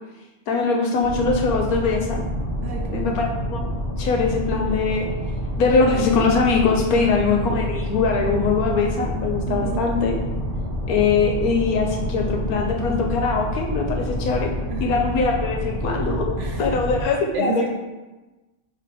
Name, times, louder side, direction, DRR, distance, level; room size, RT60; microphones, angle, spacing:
voice 1, 0.5-2.2 2.9-3.7 4.0-5.1 5.6-10.2 10.9-14.5 14.8-17.7, left 4 dB, 75° left, 2 dB, 1.0 m, -22 dB
sound 1, 1.0-17.0, equal, 35° left, 0.8 m, -28 dB
voice 2, 2.6-3.1 7.0-7.2 9.5-9.7 14.7-15.1 16.4-16.7 17.3-17.7, right 5 dB, 70° right, 2 dB, 0.8 m, -31 dB
3.3 x 3.1 x 4.8 m, 1.1 s
omnidirectional pair, 1.6 m